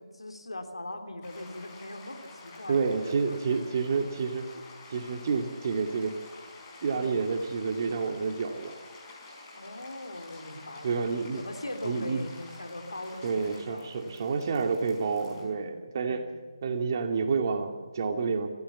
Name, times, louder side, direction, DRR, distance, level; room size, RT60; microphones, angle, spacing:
voice 1, 0.0-2.8 3.3-3.6 6.9-7.2 9.5-10.9 11.4-13.4 13.7-13.9 15.2-15.7 16.0-16.4, left 1 dB, 80° left, 5 dB, 3.4 m, -41 dB
sound 1, 1.2-15.5, left 3 dB, 20° left, 5.0 m, -49 dB
voice 2, 2.7-4.5 4.9-6.2 6.8-8.7 10.8-11.4 11.8-12.3 13.2-16.3 16.6-18.5, right 5 dB, 40° right, 4 dB, 2.5 m, -29 dB
25.5 x 16.0 x 7.3 m, 1.5 s
figure-of-eight pair, 150°, 3 cm